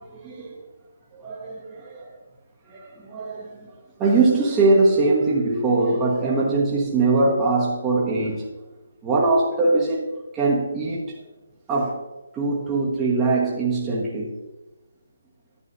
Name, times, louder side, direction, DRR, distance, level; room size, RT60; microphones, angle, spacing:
voice 1, 0.1-0.6 1.1-2.1 2.7-3.7 4.0-8.5 9.0-10.1 10.3-11.1 11.7-12.0 12.3-14.4, right 3 dB, 15° right, -5 dB, 1.4 m, -22 dB
11.0 x 8.4 x 2.7 m, 1.0 s
figure-of-eight pair, 155°, 0 cm